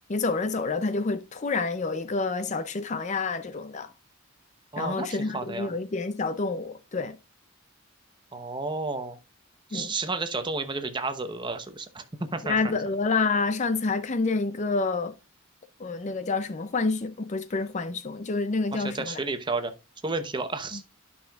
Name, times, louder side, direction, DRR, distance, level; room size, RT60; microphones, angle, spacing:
voice 1, 0.1-3.9 4.8-7.2 9.7-9.9 12.4-15.1 15.8-19.2, left 3 dB, 35° left, 0.5 m, -28 dB
voice 2, 4.7-5.7 8.3-9.2 9.7-12.8 18.7-19.7 20.0-20.8, right 3 dB, 20° right, 0.7 m, -32 dB
11.5 x 5.6 x 2.3 m
head